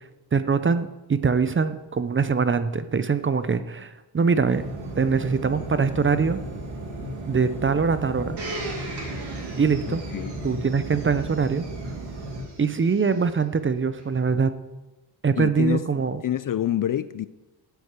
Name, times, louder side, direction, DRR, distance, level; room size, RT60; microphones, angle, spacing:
voice 1, 0.3-4.6 5.0-6.4 7.3-8.4 9.6-10.0 10.4-11.7 12.6-14.5 15.2-16.2, right 5 dB, 25° right, 12 dB, 0.6 m, -23 dB
sound 1, 4.5-12.4, right 1 dB, 85° right, 2.6 m, -35 dB
Domestic sounds home sounds, 8.4-13.2 14.0-14.1, right 2 dB, 55° right, 3.7 m, -39 dB
voice 2, 9.9-10.3 15.4-15.9 16.2-17.3, left 11 dB, 45° left, 15 dB, 0.4 m, -27 dB
10.0 x 8.1 x 8.1 m, 1.1 s
cardioid pair, 125°, 48 cm